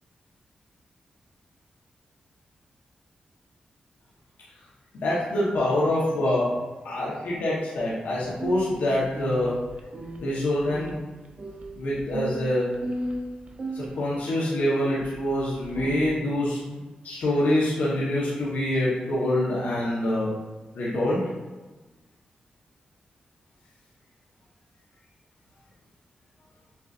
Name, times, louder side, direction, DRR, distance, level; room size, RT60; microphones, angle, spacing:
voice 1, 4.9-6.5 6.8-9.6 10.2-10.9 11.7-12.7 13.7-16.8 17.0-20.3 20.7-21.3, left 1 dB, 85° left, -7 dB, 1.1 m, -25 dB
sound 1, 8.3-14.2 15.0-15.1 15.5-16.2, right 2 dB, 45° right, 0.6 m, -35 dB
7.0 x 2.4 x 2.5 m, 1.2 s
cardioid pair, 55°, 3 cm